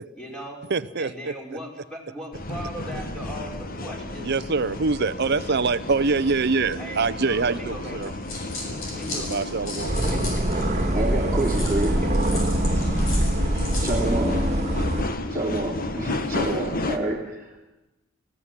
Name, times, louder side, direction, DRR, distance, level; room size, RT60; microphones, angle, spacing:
voice 1, 0.1-0.6 1.0-4.3 6.7-8.4 8.7-9.4 10.1-10.2 10.8-11.1, equal, 5° left, 4.5 m, -39 dB
voice 2, 0.7-1.3 4.2-8.1 9.3-10.0, right 4 dB, 55° right, 0.7 m, -24 dB
sound 1, 2.3-17.0, left 2 dB, 45° left, 1.4 m, -33 dB
sound 2, 8.0-10.8 11.4-14.1, left 2 dB, 75° left, 6.6 m, -36 dB
sound 3, 9.9-15.0, right 1 dB, 35° right, 2.1 m, -23 dB
voice 3, 10.9-12.2 13.8-14.8 15.3-17.6, right 2 dB, 15° right, 2.9 m, -28 dB
19.5 x 15.5 x 9.7 m
head